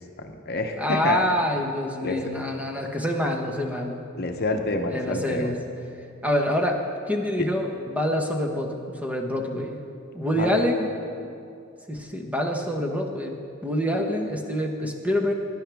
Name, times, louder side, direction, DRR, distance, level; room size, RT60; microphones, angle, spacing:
voice 1, 0.2-1.2 2.0-2.2 4.2-5.5 10.3-10.5, left 2 dB, 50° left, 5 dB, 0.9 m, -27 dB
voice 2, 0.8-4.0 4.9-5.5 6.2-9.8 10.1-10.9 11.9-13.3 13.6-15.3, equal, 5° right, 2 dB, 1.0 m, -26 dB
18.5 x 10.0 x 3.5 m, 2.4 s
head